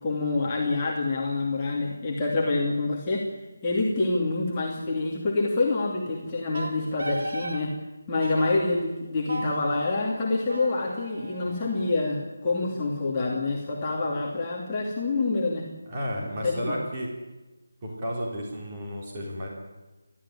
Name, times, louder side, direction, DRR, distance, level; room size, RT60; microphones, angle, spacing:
voice 1, 0.0-3.3 3.6-7.7 8.1-15.7 16.4-16.7, left 3 dB, 15° left, -5 dB, 2.6 m, -27 dB
Wind instrument woodwind instrument, 6.5-7.6 8.2-8.7 9.3-12.3, right 1 dB, 85° right, 4.5 m, -37 dB
voice 2, 15.9-17.1 17.8-19.5, equal, 15° right, -3 dB, 4.2 m, -32 dB
30.0 x 14.0 x 10.0 m, 1.2 s
figure-of-eight pair, 175°, 0 cm